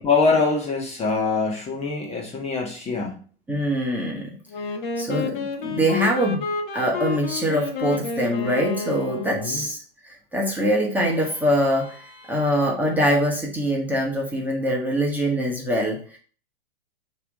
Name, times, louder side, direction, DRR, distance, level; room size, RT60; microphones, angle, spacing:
voice 1, 0.0-3.2 9.3-9.6, left 4 dB, 20° left, 0 dB, 1.6 m, -24 dB
voice 2, 3.5-4.4 5.0-6.5 6.7-16.2, equal, 5° right, -2 dB, 1.6 m, -24 dB
Wind instrument woodwind instrument, 4.5-9.7, left 4 dB, 55° left, 1.4 m, -30 dB
6.6 x 3.3 x 5.4 m, 0.41 s
hypercardioid pair, 105°, 30 cm